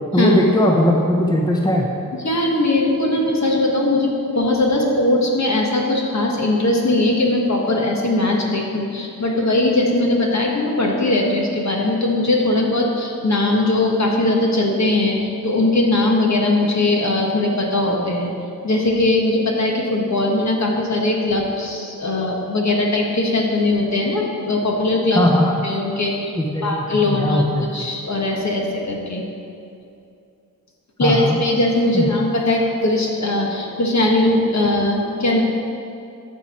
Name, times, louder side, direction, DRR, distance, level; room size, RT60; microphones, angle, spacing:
voice 1, 0.1-1.9 25.1-25.6 26.4-27.9 31.0-31.3 31.9-32.1, left 1 dB, 10° left, 0 dB, 0.9 m, -19 dB
voice 2, 2.2-18.3 18.6-25.3 25.6-26.3 26.6-29.2 31.0-35.4, left 2 dB, 50° left, -1 dB, 1.5 m, -20 dB
13.5 x 4.9 x 4.4 m, 2.5 s
wide cardioid pair, 75°, 34 cm